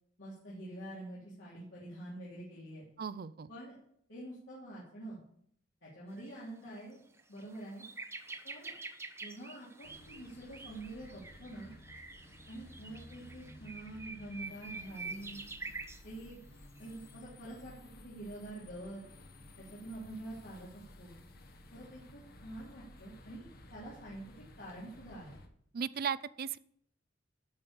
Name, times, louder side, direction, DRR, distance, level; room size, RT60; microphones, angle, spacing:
voice 1, 0.2-2.9 3.5-3.8 4.1-5.2 5.8-7.0 7.3-7.8 8.4-8.7 9.2-11.7 12.5-15.4 16.0-16.4 16.8-19.0 19.6-21.1 21.7-24.2 24.6-25.4, right 1 dB, 70° left, -8 dB, 3.4 m, -46 dB
voice 2, 3.0-3.5 25.7-26.6, right 7 dB, 50° right, 18 dB, 0.4 m, -36 dB
sound 1, 6.2-6.3 6.8-6.9 7.2-16.0 16.8-17.0, right 3 dB, 15° right, 0.7 m, -47 dB
sound 2, 9.8-25.5, left 1 dB, 50° left, 1.3 m, -55 dB
12.5 x 5.4 x 6.8 m, 0.66 s
head